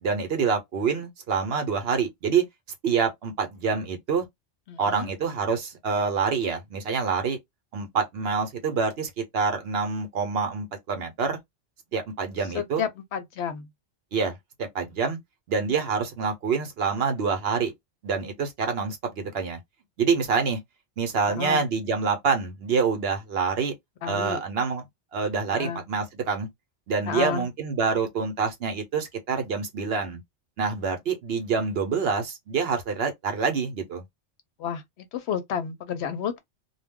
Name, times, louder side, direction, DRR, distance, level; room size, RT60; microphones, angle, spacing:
voice 1, 0.0-2.4 2.8-4.2 4.8-7.4 7.7-11.4 11.9-12.8 14.1-15.2 15.5-17.7 18.0-19.6 20.0-20.6 21.0-23.7 24.1-24.8 25.1-26.5 26.9-30.2 30.6-34.0, right 5 dB, 60° right, 0.8 m, -26 dB
voice 2, 4.7-5.1 12.5-13.7 21.3-21.7 24.0-24.4 25.5-25.9 27.0-27.5 34.6-36.4, left 7 dB, 65° left, 0.8 m, -31 dB
2.2 x 2.1 x 3.5 m
omnidirectional pair, 1.3 m